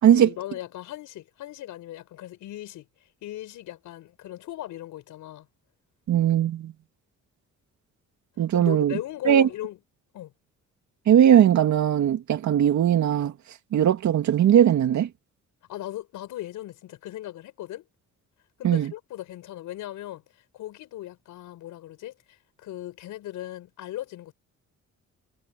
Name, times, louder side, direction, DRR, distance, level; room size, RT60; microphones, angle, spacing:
voice 1, 0.1-2.9 3.2-5.5 8.5-9.8 10.1-10.3 15.7-17.9 18.6-24.3, left 14 dB, 85° left, 5.7 m, -38 dB
voice 2, 6.1-6.7 8.4-9.0 9.2-9.5 11.1-15.1 18.6-18.9, right 10 dB, 70° right, 2.6 m, -19 dB
cardioid pair, 90°, 30 cm